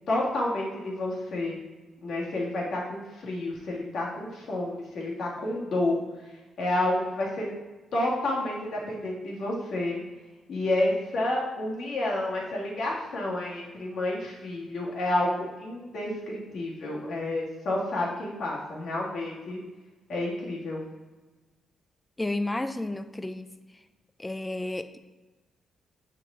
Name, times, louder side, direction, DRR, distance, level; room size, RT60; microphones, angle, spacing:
voice 1, 0.1-1.6 2.0-6.0 6.6-7.5 7.9-10.0 10.5-19.6 20.1-20.8, left 1 dB, 65° left, -3 dB, 1.6 m, -30 dB
voice 2, 22.2-23.5 24.2-25.0, left 2 dB, 10° left, 11 dB, 0.3 m, -31 dB
6.8 x 4.6 x 3.7 m, 1.2 s
cardioid pair, 130°, 0 cm